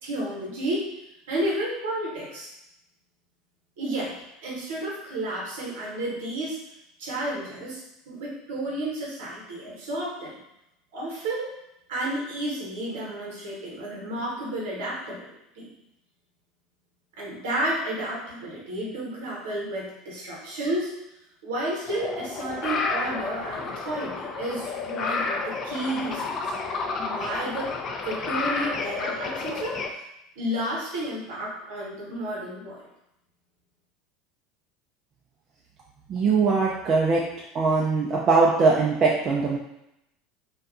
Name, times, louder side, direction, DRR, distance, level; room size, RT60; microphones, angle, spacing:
voice 1, 0.0-0.9 1.3-2.5 3.8-4.1 4.4-6.6 7.0-10.4 10.9-11.6 11.9-15.7 17.2-20.9 21.4-26.5 27.0-27.8 28.0-29.8 30.4-32.8, right 1 dB, 70° right, -4 dB, 0.9 m, -31 dB
sound 1, 21.9-29.9, left 4 dB, 40° left, 0.3 m, -31 dB
voice 2, 36.1-37.2 37.5-39.6, right 4 dB, 40° right, -3 dB, 0.4 m, -21 dB
2.5 x 2.3 x 2.5 m, 0.83 s
hypercardioid pair, 80°, 0 cm